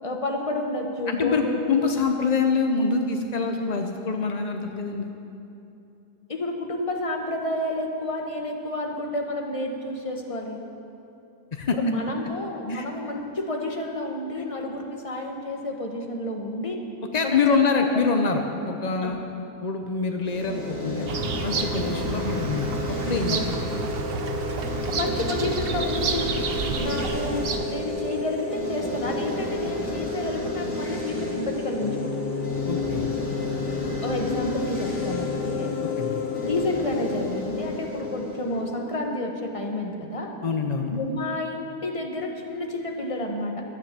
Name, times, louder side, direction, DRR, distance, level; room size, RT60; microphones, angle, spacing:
voice 1, 0.0-1.8 6.3-10.6 11.7-16.8 17.2-17.7 19.0-19.2 23.3-23.4 24.9-26.3 26.8-32.1 34.0-35.7 36.4-40.3 40.9-43.6, left 1 dB, 25° left, 2 dB, 1.0 m, -30 dB
voice 2, 1.1-1.4 1.7-5.1 11.5-11.8 12.7-12.8 14.4-14.5 17.1-19.2 19.6-21.1 21.4-23.4 32.7-33.0 36.0-36.1 40.4-40.9, left 4 dB, 65° left, 4 dB, 0.4 m, -25 dB
sound 1, 20.2-39.3, left 1 dB, 45° left, 2.7 m, -31 dB
Bird vocalization bird call bird song, 21.1-27.8, right 4 dB, 50° right, 0.7 m, -30 dB
sound 2, 31.8-38.3, left 9 dB, 85° left, 1.3 m, -33 dB
12.0 x 9.7 x 7.5 m, 2.8 s
omnidirectional pair, 1.8 m